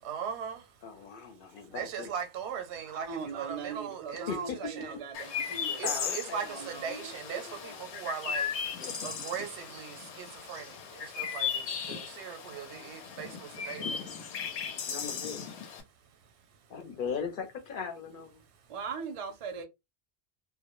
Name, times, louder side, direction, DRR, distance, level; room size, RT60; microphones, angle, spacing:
voice 1, 0.0-0.8 1.6-4.3 4.8-4.9 5.8-14.0, right 7 dB, 85° right, 0.9 m, -39 dB
voice 2, 0.8-2.1 4.3-4.7 5.8-7.9 8.8-9.1 11.0-11.2 13.4-13.9 14.4-15.5 16.7-18.4, left 6 dB, 55° left, 0.7 m, -40 dB
voice 3, 2.9-6.9 18.7-19.6, right 5 dB, 40° right, 0.5 m, -40 dB
Chirp tweet, 5.1-15.8, left 7 dB, 90° left, 0.9 m, -37 dB
2.1 x 2.0 x 2.9 m
omnidirectional pair, 1.1 m